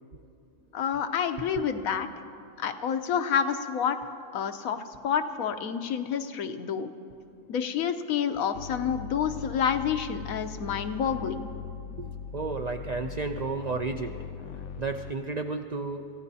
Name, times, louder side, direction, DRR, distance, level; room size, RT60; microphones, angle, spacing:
voice 1, 0.7-2.1 2.6-4.0 4.3-4.8 5.0-6.9 7.5-11.5, left 7 dB, 90° left, 8 dB, 1.2 m, -28 dB
sound 1, 8.5-15.1, left 7 dB, 65° left, 0.9 m, -40 dB
voice 2, 12.3-16.1, right 4 dB, 90° right, 5 dB, 0.3 m, -33 dB
27.0 x 15.0 x 2.8 m, 2.6 s
omnidirectional pair, 1.4 m